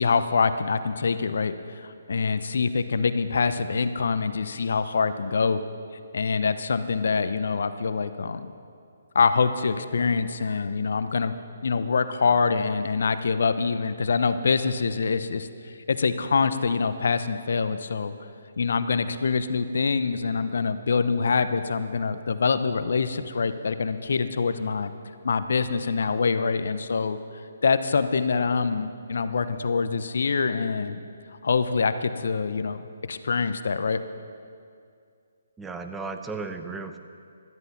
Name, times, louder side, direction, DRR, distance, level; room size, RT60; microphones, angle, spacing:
voice 1, 0.0-5.6 6.1-8.5 9.1-11.3 11.6-18.1 18.6-24.9 25.2-27.2 27.6-31.0 31.4-34.0, left 5 dB, 65° left, 11 dB, 0.9 m, -25 dB
voice 2, 35.6-37.0, right 4 dB, 10° right, 6 dB, 0.9 m, -35 dB
17.0 x 13.0 x 5.9 m, 2.3 s
figure-of-eight pair, 145°, 0 cm